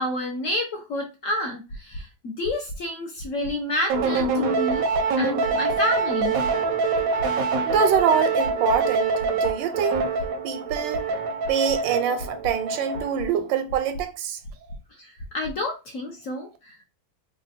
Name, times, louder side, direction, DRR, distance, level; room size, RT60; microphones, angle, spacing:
voice 1, 0.0-4.8 5.2-6.4 15.0-16.8, left 1 dB, 60° left, 0.9 m, -29 dB
sound 1, 1.7-2.0 2.4-2.8 3.2-3.5 3.9-4.3 4.7-5.0 5.4-5.8 6.2-6.5 6.9-7.3 7.7-8.0 8.4-8.8 9.2-9.5 9.9-10.3 10.7-11.0 11.4-11.8 12.2-12.5 12.9-13.3 13.7-14.0 14.4-14.8 15.2-15.5, equal, 75° left, 1.5 m, -36 dB
sound 2, 3.9-13.3, right 4 dB, 65° right, 0.9 m, -25 dB
voice 2, 7.6-10.0 10.4-11.1 11.5-14.4, right 7 dB, 85° right, 1.3 m, -25 dB
3.4 x 2.3 x 3.9 m
omnidirectional pair, 2.0 m